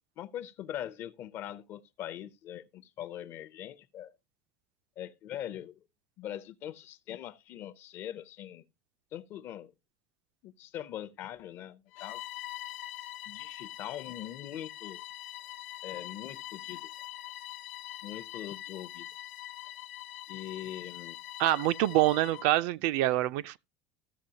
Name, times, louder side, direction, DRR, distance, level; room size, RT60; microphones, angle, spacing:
voice 1, 0.2-4.1 5.0-5.8 6.2-8.6 9.1-9.7 10.4-12.2 13.3-15.0 15.8-16.9 18.0-19.1 20.3-21.2, left 11 dB, 35° left, 0.6 m, -42 dB
Bowed string instrument, 11.9-22.5, left 15 dB, 80° left, 0.9 m, -43 dB
voice 2, 21.4-23.6, right 15 dB, 60° right, 0.4 m, -26 dB
14.5 x 6.9 x 2.8 m
cardioid pair, 180°, 6 cm